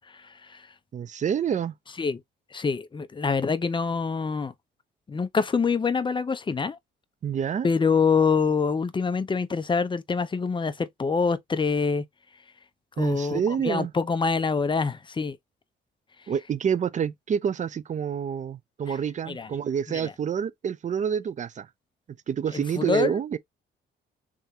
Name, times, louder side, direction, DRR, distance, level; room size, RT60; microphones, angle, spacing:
voice 1, 0.9-1.7 7.2-7.7 13.0-13.9 16.3-21.7 22.3-23.4, right 8 dB, 40° right, 0.5 m, -28 dB
voice 2, 2.5-4.5 5.1-6.8 7.6-12.0 13.0-15.4 19.3-19.5 19.9-20.0 22.8-23.1, left 5 dB, 25° left, 0.6 m, -25 dB
3.6 x 3.4 x 2.7 m
cardioid pair, 90°, 20 cm